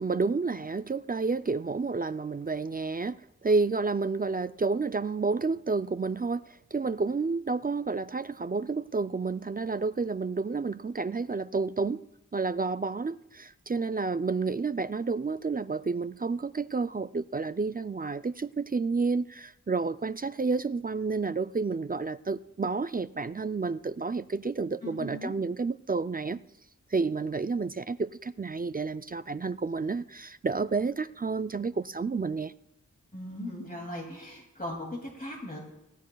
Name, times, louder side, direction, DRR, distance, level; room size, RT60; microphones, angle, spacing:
voice 1, 0.0-6.4 6.7-12.0 12.3-26.4 26.9-32.5, right 4 dB, 30° right, 0.4 m, -30 dB
voice 2, 24.8-25.4 33.1-35.6, left 1 dB, 25° left, 2.5 m, -38 dB
19.5 x 16.5 x 2.3 m
wide cardioid pair, 45°, 33 cm